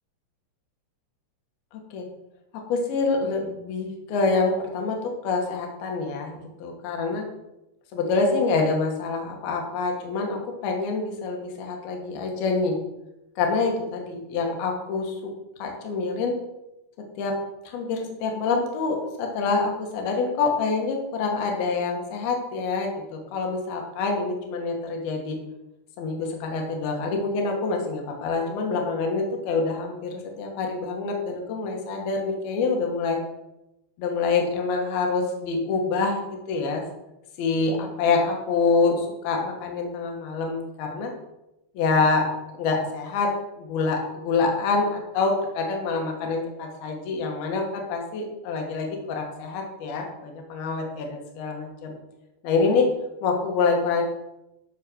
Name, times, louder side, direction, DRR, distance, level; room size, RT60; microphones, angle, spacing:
voice 1, 1.7-2.1 2.7-7.3 7.9-12.8 13.4-15.2 15.6-16.3 17.2-17.4 17.6-25.4 26.0-33.2 34.0-36.8 37.4-41.1 41.7-42.3 42.5-43.3 43.6-52.0 52.4-52.9 53.2-54.0, left 4 dB, 60° left, 2 dB, 3.0 m, -26 dB
13.0 x 4.5 x 6.3 m, 0.92 s
omnidirectional pair, 5.8 m